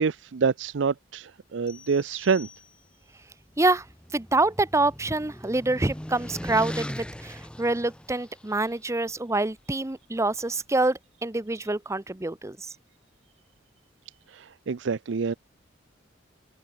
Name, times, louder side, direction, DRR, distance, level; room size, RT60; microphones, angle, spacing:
voice 1, 0.0-2.5 14.3-15.3, right 5 dB, 75° right, 0.5 m, -27 dB
sound 1, 1.7-3.2, left 6 dB, 25° left, 7.4 m, -50 dB
sound 2, 3.5-8.7, equal, 5° left, 1.0 m, -39 dB
voice 2, 4.1-12.7, right 2 dB, 15° right, 0.7 m, -26 dB
head